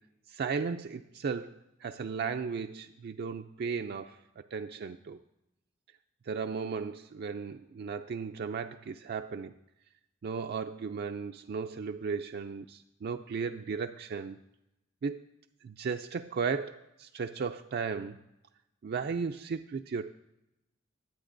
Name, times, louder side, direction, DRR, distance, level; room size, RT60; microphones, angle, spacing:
voice 1, 0.3-5.2 6.3-9.6 10.2-14.4 15.0-15.2 15.6-18.2 18.8-20.1, right 5 dB, 50° right, 6 dB, 0.4 m, -35 dB
23.0 x 8.7 x 2.6 m, 0.91 s
head